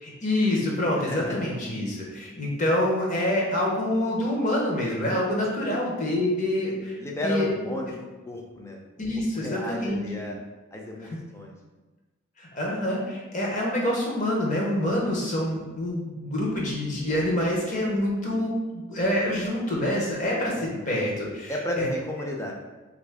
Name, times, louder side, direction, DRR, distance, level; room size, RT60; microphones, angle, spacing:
voice 1, 0.0-7.5 9.0-10.3 11.0-11.2 12.4-21.9, left 1 dB, 40° left, -3 dB, 0.8 m, -26 dB
voice 2, 1.1-1.4 5.6-5.8 7.0-8.8 9.3-10.4 10.7-11.5 20.5-21.0 21.5-22.5, left 1 dB, 15° left, -1 dB, 0.4 m, -33 dB
3.1 x 2.5 x 3.3 m, 1.2 s
head